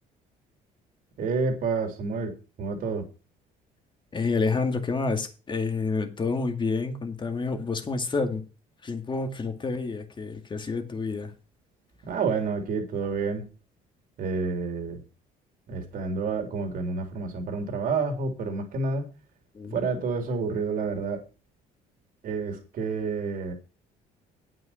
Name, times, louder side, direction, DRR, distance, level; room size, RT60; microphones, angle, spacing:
voice 1, 1.2-3.0 12.0-13.5 14.2-15.0 15.7-19.1 19.7-21.2 22.2-23.5, right 4 dB, 60° right, 3.4 m, -29 dB
voice 2, 4.1-8.4 8.8-11.3 19.5-19.8, left 4 dB, 30° left, 2.3 m, -29 dB
9.0 x 7.8 x 5.7 m
cardioid pair, 90°, 16 cm